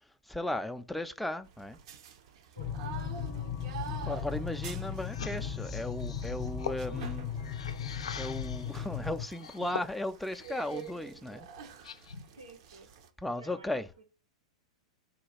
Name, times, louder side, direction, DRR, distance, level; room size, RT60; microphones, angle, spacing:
voice 1, 0.3-1.8 3.9-7.3 8.2-11.5 13.2-13.9, left 1 dB, ahead, 0.3 m, -36 dB
sound 1, 1.4-13.1, right 7 dB, 55° right, 0.6 m, -47 dB
voice 2, 2.5-3.5 4.8-5.1 6.9-7.1 12.4-12.9 13.4-14.0, right 2 dB, 85° right, 0.9 m, -52 dB
sound 2, 2.6-9.3, left 7 dB, 35° left, 0.7 m, -37 dB
sound 3, 5.1-8.8 9.3-11.0 11.3-12.4, left 7 dB, 70° left, 0.4 m, -43 dB
3.9 x 2.3 x 4.2 m
figure-of-eight pair, 95°, 3 cm